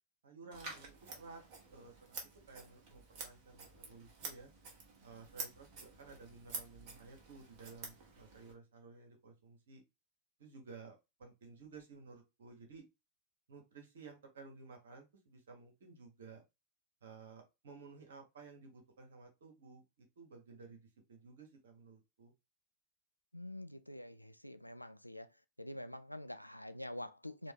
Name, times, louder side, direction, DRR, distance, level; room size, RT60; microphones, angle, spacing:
voice 1, 0.2-1.4 1.7-2.2 2.5-4.5 5.0-9.8 10.4-12.8 13.5-16.4 17.0-22.3, right 4 dB, 65° right, 1.6 m, -55 dB
Scissors, 0.5-8.5, right 4 dB, 45° right, 1.4 m, -49 dB
voice 2, 23.3-25.3 25.6-27.5, left 1 dB, 90° left, 0.3 m, -46 dB
4.2 x 2.8 x 3.5 m
figure-of-eight pair, 90°, 0 cm